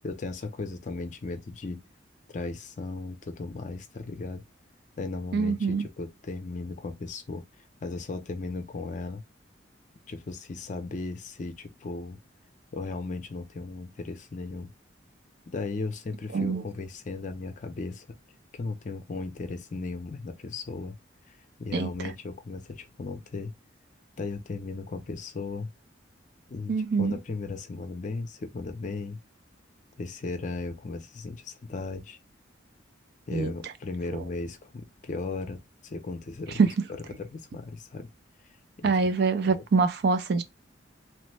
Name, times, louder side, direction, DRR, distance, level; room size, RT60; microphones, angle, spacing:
voice 1, 0.0-1.8 2.3-4.4 5.0-7.4 7.8-9.2 10.1-12.2 12.7-14.7 15.5-18.1 18.5-21.0 21.3-23.5 24.2-25.7 26.5-29.2 30.0-32.2 33.3-36.7 37.2-38.1 38.8-39.1 39.4-39.6, left 3 dB, 40° left, 0.4 m, -36 dB
voice 2, 5.3-5.8 16.3-16.6 21.7-21.9 26.7-27.2 33.3-33.5 34.1-34.2 36.6-36.7 38.8-40.4, right 4 dB, 55° right, 0.4 m, -24 dB
3.0 x 2.0 x 3.2 m
head